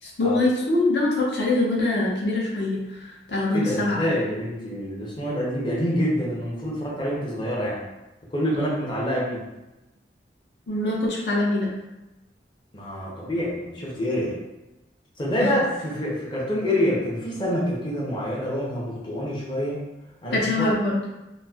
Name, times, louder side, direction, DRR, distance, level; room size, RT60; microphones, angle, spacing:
voice 1, 0.0-4.2 10.7-11.7 15.4-15.5 20.3-21.0, left 2 dB, 70° left, -3 dB, 0.6 m, -24 dB
voice 2, 3.5-7.8 8.3-9.4 12.7-14.3 15.2-19.8 20.2-20.7, equal, 25° left, -5 dB, 0.6 m, -26 dB
4.1 x 2.0 x 2.3 m, 0.99 s
head